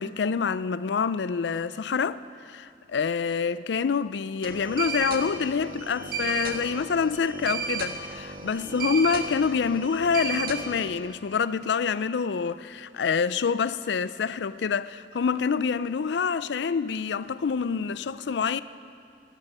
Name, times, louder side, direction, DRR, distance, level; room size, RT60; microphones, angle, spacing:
voice 1, 0.0-18.6, left 6 dB, 75° left, 0.4 m, -27 dB
sound 1, 4.4-11.0, right 5 dB, 55° right, 1.4 m, -34 dB
14.5 x 12.5 x 7.9 m
head